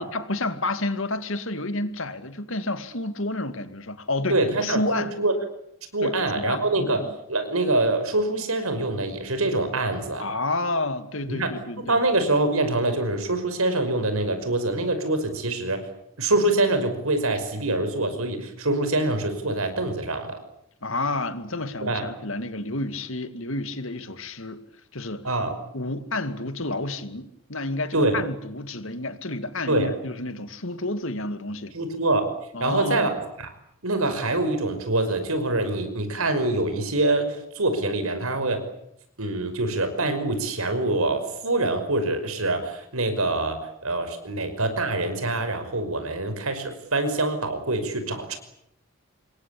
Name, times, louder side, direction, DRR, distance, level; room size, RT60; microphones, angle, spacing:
voice 1, 0.0-5.1 6.0-7.1 10.2-12.0 20.8-24.6 24.9-25.3 25.7-31.7 32.5-33.1, left 2 dB, 65° left, 10 dB, 2.4 m, -30 dB
voice 2, 4.3-5.3 5.9-10.3 11.3-15.8 16.2-20.4 21.8-22.1 25.2-25.6 27.9-28.2 29.7-29.9 31.7-32.3 32.6-33.1 33.4-33.5 33.8-38.6 39.2-48.4, right 2 dB, 80° right, 9 dB, 5.6 m, -25 dB
27.5 x 22.0 x 8.6 m, 0.74 s
head